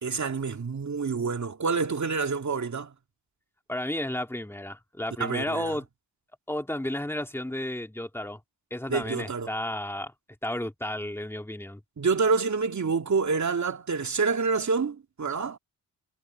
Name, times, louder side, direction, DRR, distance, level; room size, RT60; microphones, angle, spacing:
voice 1, 0.0-2.9 5.2-5.8 8.9-9.5 12.0-15.6, right 4 dB, 45° right, 2.5 m, -27 dB
voice 2, 3.7-5.8 6.5-8.4 8.7-10.1 10.4-11.8, left 1 dB, 5° left, 2.2 m, -32 dB
cardioid pair, 65°, 40 cm